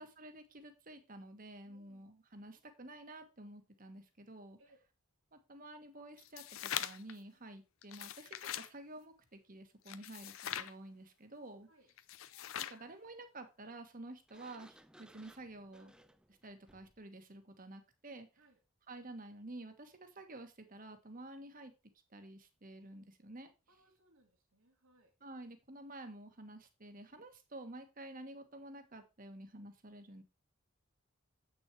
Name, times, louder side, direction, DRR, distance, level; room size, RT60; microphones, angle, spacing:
voice 1, 0.0-4.6 5.3-11.7 12.6-15.9 16.3-18.3 18.9-21.7 22.1-23.5 25.2-30.2, right 2 dB, 40° right, 7 dB, 1.5 m, -51 dB
voice 2, 1.6-2.1 4.6-4.8 11.7-11.9 18.4-18.6 23.7-25.1, right 1 dB, 85° right, 2 dB, 2.8 m, -68 dB
sound 1, 6.2-7.1 7.8-8.7 9.9-10.7 12.0-12.8, left 11 dB, 75° left, 0.6 m, -42 dB
Sliding door, 14.3-17.0, right 1 dB, 5° right, 0.5 m, -62 dB
8.2 x 6.3 x 4.6 m, 0.28 s
head